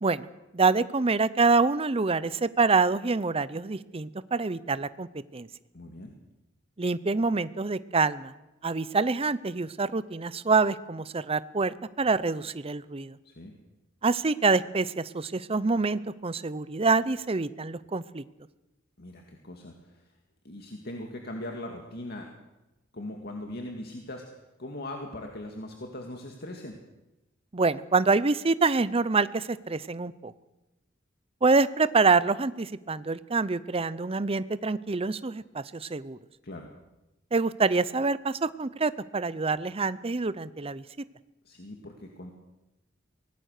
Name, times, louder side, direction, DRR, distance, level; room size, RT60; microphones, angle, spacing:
voice 1, 0.5-5.1 5.3-5.5 6.8-8.3 8.6-13.2 14.0-18.2 27.5-30.3 31.4-36.2 37.3-40.8, right 4 dB, 30° right, 16 dB, 0.7 m, -26 dB
voice 2, 5.7-6.1 13.2-13.5 19.0-20.1 20.4-22.3 22.9-26.8 36.4-36.7 41.4-42.3, left 1 dB, 55° left, 2 dB, 2.2 m, -40 dB
24.0 x 18.5 x 6.6 m, 0.99 s
head